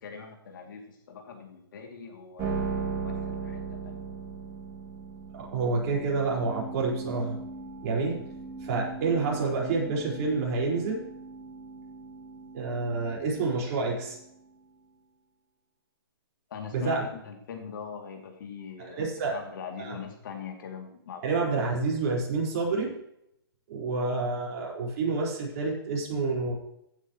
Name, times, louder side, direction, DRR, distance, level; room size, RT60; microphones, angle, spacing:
voice 1, 0.0-4.0 16.5-19.0 19.3-21.4, left 6 dB, 55° left, 3 dB, 2.6 m, -42 dB
sound 1, 2.4-14.7, right 5 dB, 20° right, 2.5 m, -38 dB
voice 2, 5.3-7.4 7.8-8.3 8.6-11.1 12.5-14.2 16.7-17.1 18.9-19.4 19.8-19.9 21.2-23.0 23.7-26.5, right 3 dB, 40° right, -3 dB, 4.8 m, -28 dB
16.0 x 8.8 x 3.1 m, 0.78 s
hypercardioid pair, 150°, 13 cm